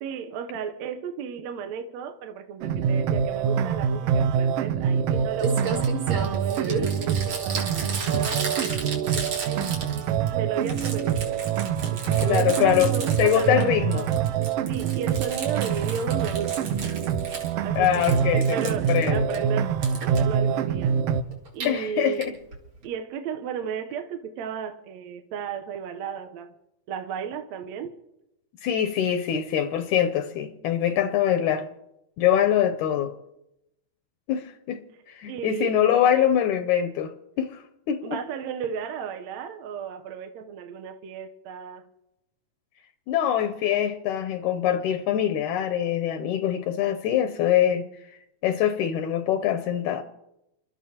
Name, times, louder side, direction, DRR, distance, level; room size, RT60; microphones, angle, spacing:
voice 1, 0.0-11.4 11.8-14.1 14.7-17.1 17.6-20.9 21.5-22.4 22.8-26.5 26.9-28.0 35.3-35.8 38.0-41.9, right 7 dB, 70° right, 6 dB, 2.0 m, -34 dB
sound 1, 2.6-21.2, right 8 dB, 90° right, 1.3 m, -25 dB
Crumpling crinkling, 5.1-5.2 5.4-10.3 10.6-13.6 13.9-17.5 17.8-19.4 19.8-20.2 21.3-21.7 22.2-22.3 22.5-22.6 22.8-22.9, right 4 dB, 55° right, 3.3 m, -34 dB
voice 2, 12.2-12.9 13.2-14.0 17.8-19.4 21.6-22.3 28.6-31.7 32.2-33.1 34.3-34.8 35.2-38.2 43.1-47.9 48.4-50.0, left 10 dB, 75° left, 7 dB, 2.0 m, -24 dB
29.0 x 13.0 x 2.9 m, 0.87 s
omnidirectional pair, 3.6 m